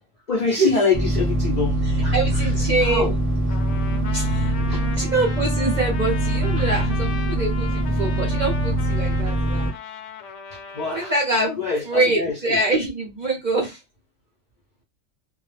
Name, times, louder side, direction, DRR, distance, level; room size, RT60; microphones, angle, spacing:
voice 1, 0.3-2.5 2.8-3.1 4.7-5.0 5.4-5.5 6.6-6.7 10.5-11.1 11.4-12.6, left 4 dB, 50° left, 0.5 m, -26 dB
sound 1, 0.9-9.7, right 1 dB, 30° right, 0.9 m, -23 dB
voice 2, 2.1-3.1 4.1-4.5 5.0-9.7 10.9-11.5 11.8-13.8, right 2 dB, 50° right, 0.5 m, -24 dB
Trumpet, 3.5-11.2, left 6 dB, 75° left, 0.9 m, -37 dB
sound 2, 3.9-8.8, right 5 dB, 70° right, 0.9 m, -38 dB
2.3 x 2.0 x 3.1 m
omnidirectional pair, 1.3 m